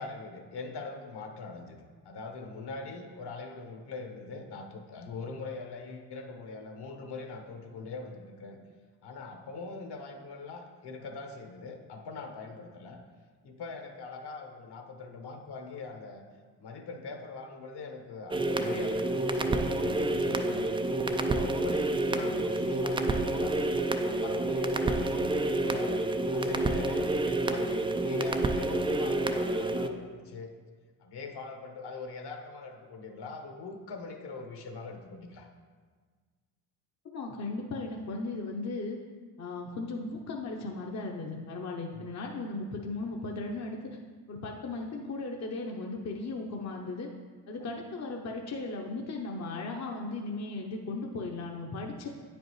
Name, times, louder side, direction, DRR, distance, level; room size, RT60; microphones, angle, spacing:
voice 1, 0.0-1.8 2.0-8.6 9.0-13.0 13.4-16.2 16.6-20.7 21.1-23.7 24.1-26.0 26.3-30.5 31.0-35.5 41.9-42.1 47.7-47.8, left 3 dB, 50° left, 4 dB, 1.2 m, -42 dB
sound 1, 18.3-29.9, right 2 dB, 10° right, 0.3 m, -29 dB
voice 2, 37.0-39.0 39.4-44.0 44.3-47.1 47.5-52.1, left 3 dB, 35° left, 0 dB, 0.8 m, -36 dB
9.1 x 5.2 x 3.2 m, 1.5 s
hypercardioid pair, 60°, 49 cm